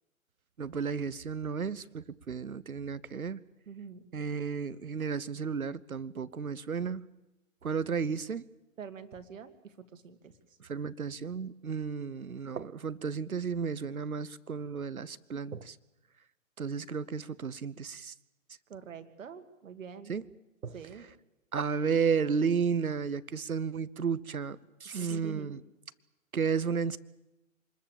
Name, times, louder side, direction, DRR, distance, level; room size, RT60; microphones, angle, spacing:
voice 1, 0.6-3.4 4.1-7.0 7.6-8.4 10.6-15.8 16.6-18.1 20.1-20.2 20.6-20.7 21.5-25.6 26.3-27.0, right 6 dB, 85° right, 17 dB, 1.0 m, -33 dB
voice 2, 3.7-4.0 8.8-10.3 18.7-20.1 20.7-21.0 25.0-25.6, right 7 dB, 65° right, 8 dB, 2.1 m, -46 dB
26.0 x 21.0 x 7.3 m, 0.95 s
figure-of-eight pair, 120°, 42 cm